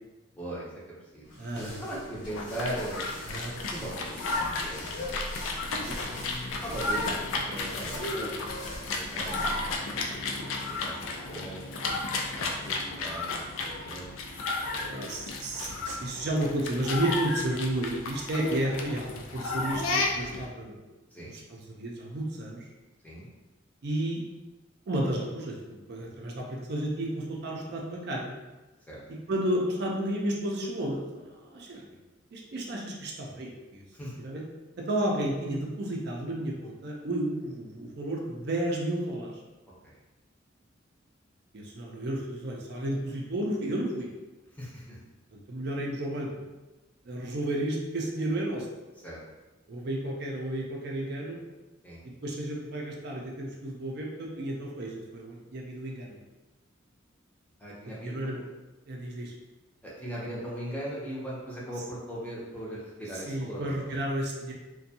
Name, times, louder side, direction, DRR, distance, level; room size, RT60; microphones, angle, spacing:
voice 1, 0.4-0.7 1.1-1.2 1.5-3.0 3.7-4.3 4.6-4.9 6.6-9.6 10.1-12.0 12.3-14.4 21.1-21.3 23.0-23.3 28.9-29.2 33.9-34.1 44.5-45.0 49.0-49.2 51.8-52.0 57.6-58.3 59.8-64.0, right 1 dB, 10° left, -6 dB, 0.5 m, -39 dB
sound 1, 1.2-9.8, equal, 60° left, 0.8 m, -43 dB
voice 2, 1.4-1.9 3.2-3.5 5.7-6.0 14.6-20.8 21.2-22.6 23.8-24.2 24.9-28.3 29.3-31.8 32.3-33.8 34.2-34.4 34.8-39.3 41.5-44.1 45.5-46.3 47.0-48.7 49.7-51.4 52.2-56.2 57.9-58.4 58.9-59.3 63.1-64.5, right 1 dB, 55° right, -1 dB, 0.4 m, -32 dB
sound 2, 2.3-20.5, left 3 dB, 85° left, 0.4 m, -33 dB
2.5 x 2.2 x 2.7 m, 1.1 s
head